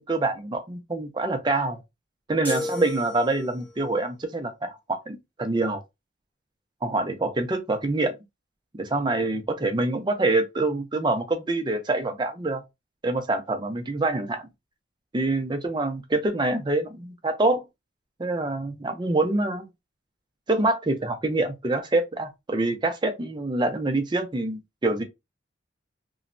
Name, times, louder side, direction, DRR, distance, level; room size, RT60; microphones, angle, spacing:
voice 1, 0.0-1.8 2.3-5.8 6.8-8.1 8.8-12.6 13.0-14.5 15.1-17.6 18.2-19.7 20.5-25.0, right 2 dB, 20° right, 0.4 m, -26 dB
sound 1, 2.4-3.8, left 2 dB, 10° left, 0.7 m, -33 dB
3.0 x 2.1 x 2.5 m
head